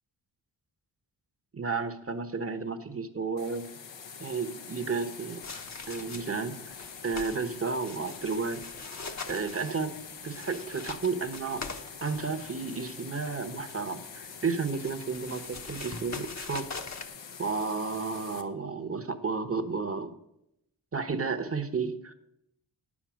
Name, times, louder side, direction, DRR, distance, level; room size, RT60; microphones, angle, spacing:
voice 1, 1.5-3.7 4.2-5.4 5.9-6.7 7.0-8.6 9.3-10.0 10.2-11.6 12.0-16.6 17.0-17.1 17.4-20.1 20.9-22.1, right 4 dB, 30° right, 10 dB, 1.0 m, -32 dB
sound 1, 3.4-18.4, left 6 dB, 85° left, 1.1 m, -45 dB
sound 2, 5.4-6.4 6.7-7.4 7.7-12.9 14.2-17.1, left 4 dB, 40° left, 1.1 m, -42 dB
9.7 x 7.3 x 6.2 m, 0.82 s
cardioid pair, 60°, 43 cm